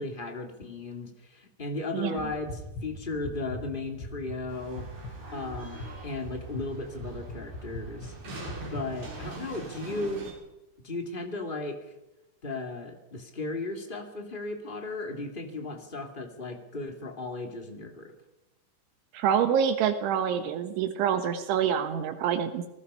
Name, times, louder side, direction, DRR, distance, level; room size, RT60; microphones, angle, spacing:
voice 1, 0.0-4.9 5.3-8.1 8.7-10.3 10.8-11.8 12.4-18.1, left 2 dB, 25° left, 4 dB, 1.1 m, -36 dB
sound 1, 2.2-9.2, left 1 dB, 70° left, 8.1 m, -42 dB
sound 2, 4.5-10.3, right 2 dB, 50° right, 7.1 m, -44 dB
voice 2, 19.1-22.6, right 8 dB, 80° right, 8 dB, 3.6 m, -26 dB
28.0 x 20.0 x 5.6 m, 0.97 s
omnidirectional pair, 5.5 m